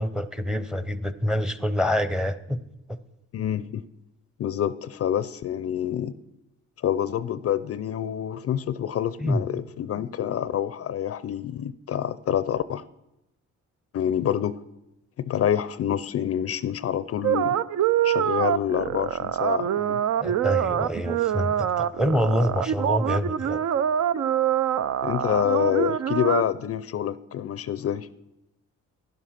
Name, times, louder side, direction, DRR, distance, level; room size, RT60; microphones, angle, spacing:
voice 1, 0.0-2.6 9.2-9.4 20.2-23.6, left 1 dB, ahead, 13 dB, 0.7 m, -26 dB
voice 2, 3.3-3.8 4.4-6.1 6.8-12.8 13.9-14.6 15.2-17.5 18.0-20.0 25.0-28.1, left 10 dB, 50° left, 16 dB, 0.5 m, -27 dB
sound 1, 17.2-26.4, right 10 dB, 60° right, 0.6 m, -25 dB
11.0 x 11.0 x 5.8 m, 0.89 s
cardioid pair, 90°, 30 cm